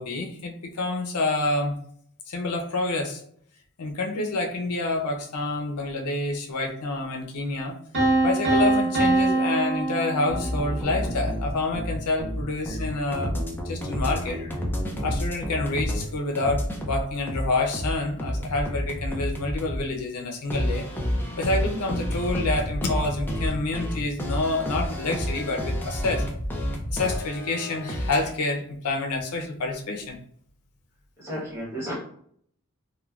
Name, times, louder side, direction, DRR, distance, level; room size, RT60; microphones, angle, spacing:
voice 1, 0.0-1.7 2.3-3.2 3.8-7.8 8.2-14.6 15.0-20.8 21.4-26.2 26.9-30.1, left 2 dB, 90° left, 2 dB, 0.6 m, -28 dB
Piano, 7.9-10.8, right 2 dB, 60° right, 1.1 m, -23 dB
sound 1, 10.3-16.1 16.3-19.8 20.5-28.3, equal, 10° left, 0.4 m, -29 dB
voice 2, 31.2-31.9, equal, 10° right, -6 dB, 1.1 m, -33 dB
3.0 x 2.2 x 2.4 m, 0.62 s
head